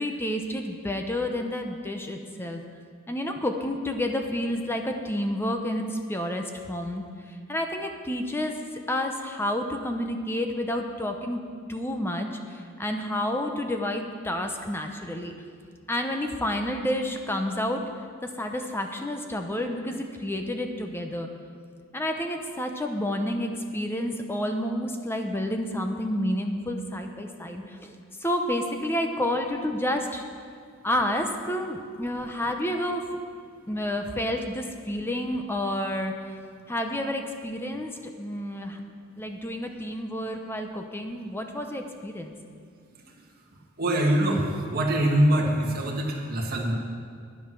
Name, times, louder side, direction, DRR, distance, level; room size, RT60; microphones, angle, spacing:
voice 1, 0.0-2.6 3.1-7.0 7.5-8.6 8.9-11.4 11.7-15.3 15.9-17.8 18.2-21.3 21.9-27.9 28.2-30.2 30.8-33.0 33.7-36.3 36.7-38.8 39.2-42.3, left 1 dB, 10° left, 4 dB, 0.8 m, -30 dB
voice 2, 43.8-46.7, right 1 dB, 45° right, -1 dB, 1.8 m, -24 dB
10.5 x 9.7 x 6.1 m, 2.2 s
head